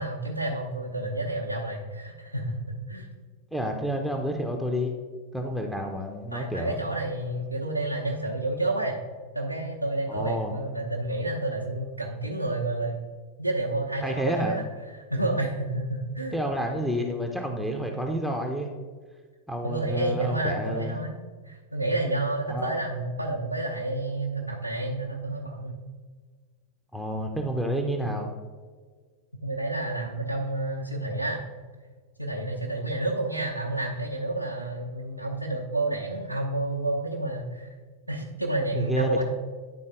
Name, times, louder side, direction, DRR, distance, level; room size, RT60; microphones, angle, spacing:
voice 1, 0.0-3.1 6.3-9.0 9.3-13.0 13.4-14.6 14.9-16.4 19.6-21.2 21.4-25.7 29.4-31.4 32.2-37.7 38.1-39.2, right 2 dB, 90° right, -3 dB, 0.7 m, -30 dB
voice 2, 3.5-4.9 5.3-6.8 10.1-10.5 14.0-14.6 16.3-18.7 19.5-21.0 22.5-22.8 26.9-28.3 38.7-39.2, equal, ahead, 2 dB, 0.6 m, -29 dB
10.0 x 3.9 x 3.7 m, 1.5 s
figure-of-eight pair, 90°, 0 cm